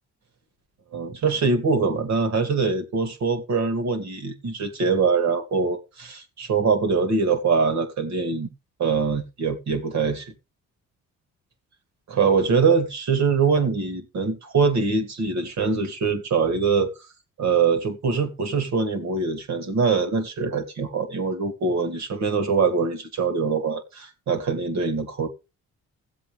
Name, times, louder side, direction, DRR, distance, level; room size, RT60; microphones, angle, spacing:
voice 1, 0.9-8.5 8.8-10.3 12.1-17.1 17.4-25.3, right 5 dB, 65° right, 2.4 m, -23 dB
16.5 x 7.9 x 3.3 m
cardioid pair, 90°, 30 cm